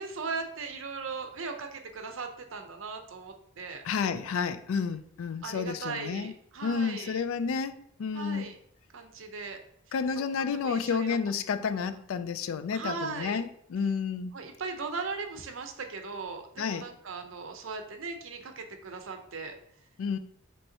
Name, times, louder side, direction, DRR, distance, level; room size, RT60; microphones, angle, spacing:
voice 1, 0.0-3.8 5.4-7.2 8.1-8.5 8.9-9.6 10.5-11.2 12.7-13.4 14.3-19.5, right 4 dB, 70° right, 0.7 m, -38 dB
voice 2, 3.8-6.3 6.6-8.5 9.9-14.3 16.6-16.9 20.0-20.2, left 6 dB, 85° left, 0.4 m, -31 dB
5.4 x 3.3 x 2.8 m
head